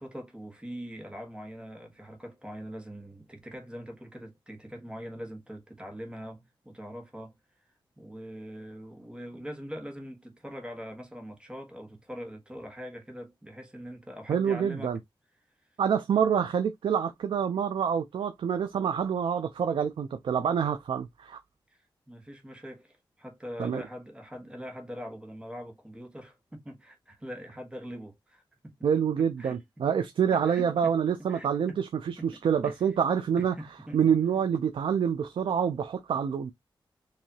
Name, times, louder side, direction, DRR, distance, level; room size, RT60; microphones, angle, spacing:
voice 1, 0.0-7.4 8.0-14.9 21.7-21.8 22.1-28.7 29.2-29.6 30.3-31.0 31.3-31.8 32.2-32.9 33.4-34.0, equal, 10° right, 1.3 m, -42 dB
voice 2, 14.3-15.0 15.8-21.4 23.6-23.8 28.8-33.5 33.9-36.5, right 7 dB, 85° right, 0.5 m, -27 dB
4.7 x 2.7 x 2.8 m
wide cardioid pair, 100°, 9 cm